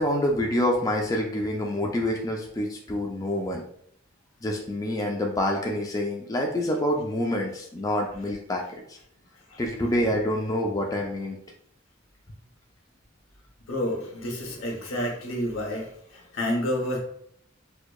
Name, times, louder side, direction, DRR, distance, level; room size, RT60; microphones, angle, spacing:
voice 1, 0.0-3.6 4.4-9.0 9.6-11.4, left 1 dB, 15° left, 0 dB, 0.3 m, -27 dB
voice 2, 13.7-17.0, left 1 dB, 80° left, 1 dB, 0.9 m, -29 dB
4.4 x 2.2 x 2.2 m, 0.68 s
head